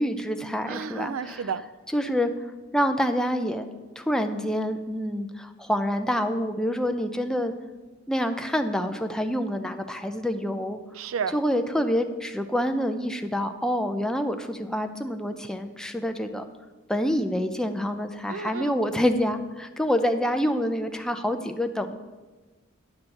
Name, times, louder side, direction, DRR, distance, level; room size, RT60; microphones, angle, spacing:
voice 1, 0.0-1.5 1.9-2.3 2.7-3.7 4.0-7.5 8.1-10.8 11.3-16.4 16.9-22.0, equal, 5° left, 6 dB, 0.5 m, -27 dB
voice 2, 0.7-1.6 11.0-11.4 18.3-18.8, right 6 dB, 80° right, 15 dB, 0.4 m, -31 dB
10.0 x 4.4 x 7.7 m, 1.2 s
head